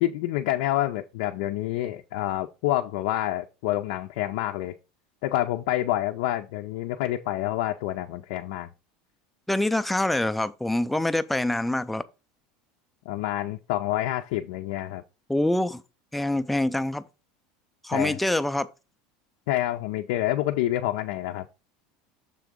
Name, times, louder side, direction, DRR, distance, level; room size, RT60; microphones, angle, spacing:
voice 1, 0.0-4.7 5.2-8.7 13.1-15.0 17.9-18.2 19.5-21.5, left 14 dB, 75° left, 0.5 m, -27 dB
voice 2, 9.5-12.0 15.3-15.8 16.1-17.0 17.8-18.7, left 1 dB, 5° left, 0.4 m, -25 dB
6.8 x 3.6 x 5.1 m
supercardioid pair, 145°, 3 cm